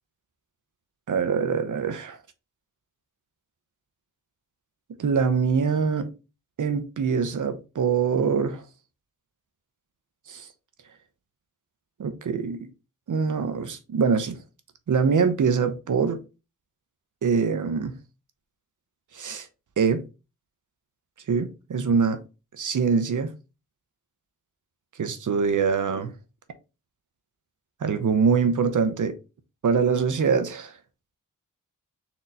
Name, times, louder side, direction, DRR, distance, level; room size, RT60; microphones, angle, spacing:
voice 1, 1.1-2.2 5.0-6.1 6.6-8.6 10.3-10.5 12.0-12.7 13.1-14.3 14.9-16.2 17.2-18.0 19.1-19.5 19.8-20.0 21.3-22.2 22.6-23.3 25.0-26.1 27.8-29.2 29.6-30.7, right 5 dB, 65° right, 0.8 m, -24 dB
4.3 x 3.0 x 3.8 m
cardioid pair, 75°, 33 cm